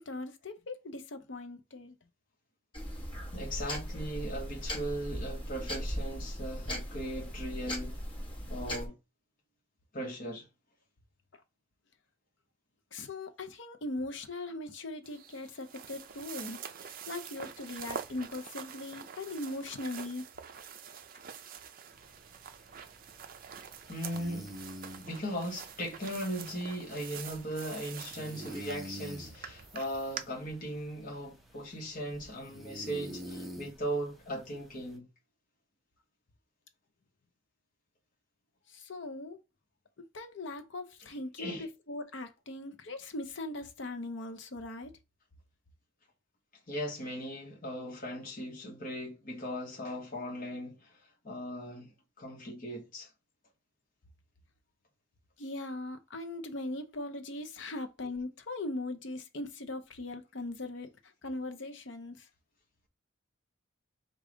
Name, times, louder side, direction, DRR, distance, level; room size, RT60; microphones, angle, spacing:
voice 1, 0.0-2.0 12.9-20.3 38.7-39.4 40.0-44.9 55.4-60.9 61.2-62.3, left 2 dB, 60° left, 0.7 m, -40 dB
sound 1, 2.7-8.9, equal, 25° left, 1.1 m, -38 dB
voice 2, 3.3-8.0 8.5-8.9 9.9-10.5 23.9-24.5 25.0-35.1 41.4-41.7 46.7-51.0 51.2-53.1, equal, 40° left, 1.1 m, -38 dB
sound 2, 15.0-30.2, right 7 dB, 45° right, 0.4 m, -46 dB
sound 3, 21.9-35.0, equal, ahead, 0.7 m, -48 dB
4.9 x 2.4 x 3.8 m
head